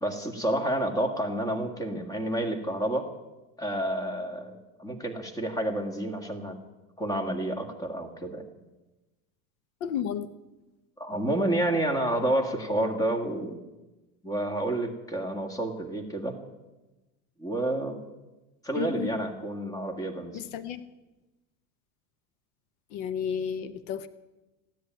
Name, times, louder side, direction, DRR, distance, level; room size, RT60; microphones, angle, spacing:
voice 1, 0.0-3.1 3.6-6.6 7.0-8.4 11.0-13.6 14.2-16.4 17.4-18.0 18.6-20.5, right 1 dB, 10° left, 5 dB, 1.7 m, -29 dB
voice 2, 9.8-10.3 18.8-19.1 20.3-20.8 22.9-24.1, left 8 dB, 70° left, 13 dB, 1.0 m, -32 dB
15.0 x 10.0 x 9.1 m, 1.1 s
supercardioid pair, 150°, 42 cm